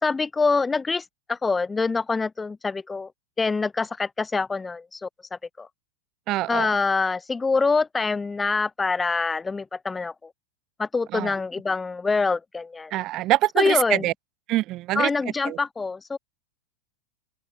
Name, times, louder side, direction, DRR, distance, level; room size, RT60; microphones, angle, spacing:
voice 1, 0.0-3.1 3.4-5.7 6.5-10.3 10.8-12.9 13.6-14.0 14.9-16.2, left 4 dB, 10° left, 1.6 m, -25 dB
voice 2, 6.3-6.8 11.1-11.3 12.9-14.1 14.5-15.1 15.4-15.6, right 17 dB, 35° right, 0.7 m, -24 dB
figure-of-eight pair, 90°, 0 cm